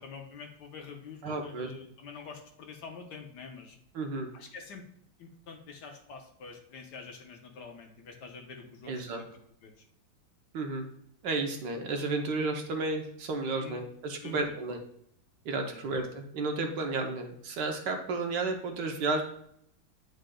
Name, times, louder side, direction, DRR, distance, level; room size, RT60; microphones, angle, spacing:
voice 1, 0.0-3.8 4.3-4.8 5.2-9.3 9.6-9.7 13.6-13.8 14.2-14.5 15.7-15.8, left 5 dB, 65° left, 3 dB, 1.3 m, -46 dB
voice 2, 1.2-1.7 3.9-4.3 8.9-9.2 10.5-10.9 11.2-14.8 15.4-19.2, right 3 dB, 65° right, 4 dB, 1.3 m, -32 dB
9.5 x 5.0 x 2.2 m, 0.71 s
omnidirectional pair, 2.1 m